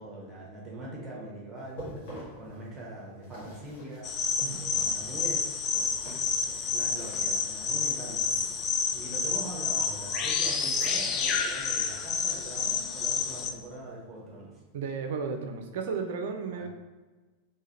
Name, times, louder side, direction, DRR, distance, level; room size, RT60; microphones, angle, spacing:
voice 1, 0.0-4.1 4.5-6.0 6.3-14.6 16.5-16.7, right 2 dB, 15° right, -3 dB, 1.1 m, -43 dB
sound 1, 1.6-8.3 9.7-11.5 11.8-13.8 14.2-14.4 14.9-15.0, right 1 dB, 50° left, 1.5 m, -48 dB
sound 2, 4.0-13.5, left 5 dB, 30° left, 0.3 m, -29 dB
voice 2, 14.7-16.7, right 5 dB, 55° right, 5 dB, 0.4 m, -34 dB
3.6 x 2.8 x 2.9 m, 1.2 s
figure-of-eight pair, 90°, 0 cm